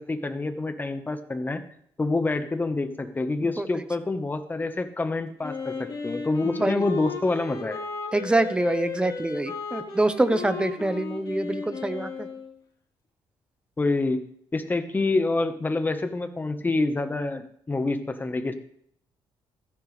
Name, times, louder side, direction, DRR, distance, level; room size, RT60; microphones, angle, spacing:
voice 1, 0.0-1.6 2.0-7.8 13.8-14.2 14.5-18.5, left 2 dB, 20° left, 8 dB, 1.3 m, -27 dB
Wind instrument woodwind instrument, 5.4-12.5, left 4 dB, 40° left, 5.1 m, -35 dB
voice 2, 6.4-6.8 8.1-12.3, right 2 dB, 10° right, 11 dB, 1.0 m, -25 dB
15.5 x 14.5 x 3.4 m, 0.67 s
cardioid pair, 125°, 10 cm